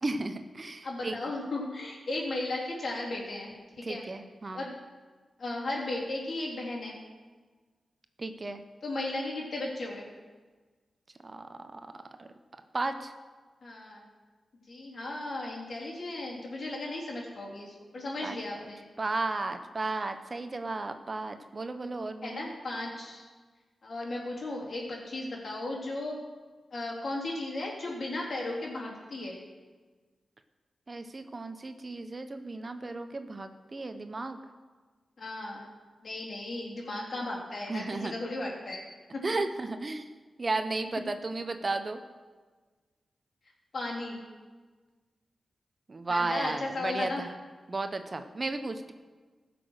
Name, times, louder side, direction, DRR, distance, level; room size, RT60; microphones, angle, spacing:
voice 1, 0.0-1.2 3.8-4.6 8.2-8.6 11.2-12.3 12.7-13.1 18.2-18.4 19.0-22.4 30.9-34.4 37.7-38.1 39.2-40.1 40.4-42.0 45.9-47.3 47.7-48.9, right 3 dB, 40° right, 8 dB, 0.9 m, -34 dB
voice 2, 0.8-4.0 4.5-4.7 5.4-7.0 8.8-10.1 13.6-14.1 14.7-18.8 22.2-23.3 23.8-26.2 26.7-29.4 35.2-35.7 36.0-38.8 39.1-39.2 43.7-44.2 46.1-47.2, left 2 dB, 60° left, -3 dB, 3.5 m, -35 dB
15.5 x 6.1 x 6.4 m, 1.4 s
cardioid pair, 55°, 0 cm